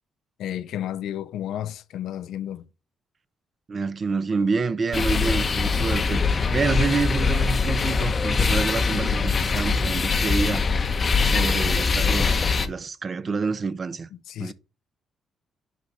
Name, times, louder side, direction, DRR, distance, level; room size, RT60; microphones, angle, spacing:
voice 1, 0.4-2.7 14.1-14.5, left 11 dB, 80° left, 0.5 m, -32 dB
voice 2, 3.7-10.6 11.2-14.1 14.4-14.5, right 4 dB, 40° right, 0.7 m, -28 dB
sound 1, 4.9-12.7, left 4 dB, 40° left, 0.8 m, -22 dB
10.0 x 3.5 x 4.1 m
cardioid pair, 90°, 0 cm